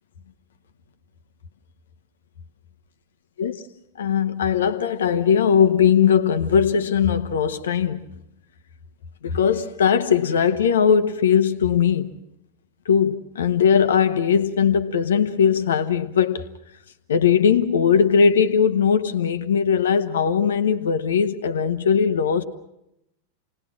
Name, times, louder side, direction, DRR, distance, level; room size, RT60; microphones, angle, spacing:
voice 1, 4.0-8.0 9.2-12.2 12.8-16.5 17.1-22.4, left 7 dB, 65° left, 1.2 m, -19 dB
28.5 x 19.5 x 7.4 m
figure-of-eight pair, 90°, 0 cm